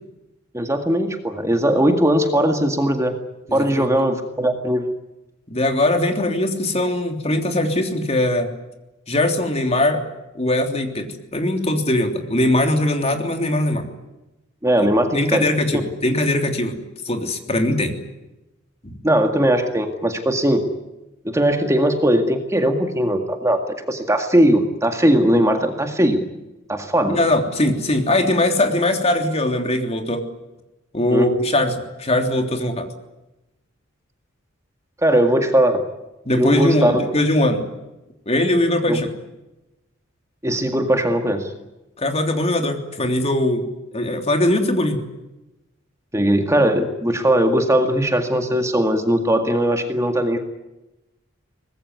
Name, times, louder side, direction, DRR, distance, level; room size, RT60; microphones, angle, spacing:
voice 1, 0.5-3.1 3.5-5.0 14.6-15.4 19.0-20.6 21.3-26.2 26.7-27.2 31.1-31.3 35.0-35.8 36.4-37.0 38.9-39.0 40.4-41.5 46.1-50.4, right 1 dB, 15° right, 5 dB, 2.0 m, -19 dB
voice 2, 3.5-3.9 5.5-8.5 9.1-10.0 10.3-13.9 15.1-16.8 17.0-17.9 18.8-18.9 27.1-30.2 30.9-32.9 36.2-37.6 38.3-39.1 42.0-43.7 43.9-45.0, left 1 dB, 30° left, 5 dB, 3.3 m, -20 dB
24.0 x 20.0 x 9.6 m, 0.98 s
head